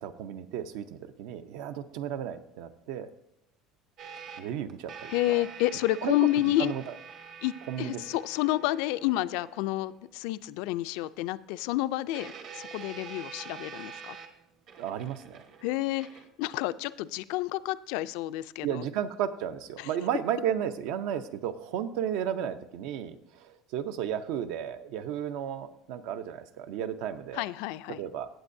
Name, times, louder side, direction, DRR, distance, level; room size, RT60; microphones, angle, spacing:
voice 1, 0.0-3.1 4.4-5.1 6.0-6.1 6.6-6.8 7.7-8.0 14.8-15.4 18.6-27.4 28.0-28.3, right 9 dB, 70° right, 11 dB, 0.7 m, -33 dB
sound 1, 4.0-10.1 10.7-10.8 12.1-16.3, right 6 dB, 50° right, 1.2 m, -46 dB
voice 2, 5.1-6.7 7.4-7.5 7.8-14.2 15.6-16.1 16.4-18.8 19.8-19.9 27.3-28.0, left 16 dB, 70° left, 14 dB, 0.3 m, -29 dB
17.0 x 7.6 x 2.7 m, 0.80 s
cardioid pair, 165°, 0 cm